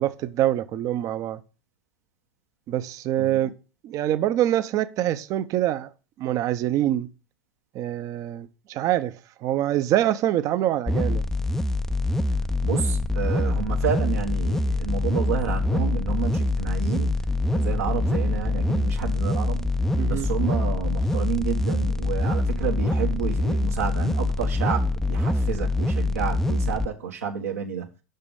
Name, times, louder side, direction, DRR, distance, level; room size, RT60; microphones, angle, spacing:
voice 1, 0.0-1.4 2.7-3.5 3.8-5.9 6.2-7.1 7.7-9.1 9.4-11.2 20.0-20.3, right 12 dB, 45° right, 0.7 m, -25 dB
voice 2, 3.2-3.5 12.6-17.1 17.5-19.7 20.1-27.9, right 7 dB, 85° right, 1.4 m, -30 dB
sound 1, 10.9-26.9, left 2 dB, 5° left, 0.5 m, -24 dB
6.0 x 5.5 x 5.4 m
hypercardioid pair, 90°, 8 cm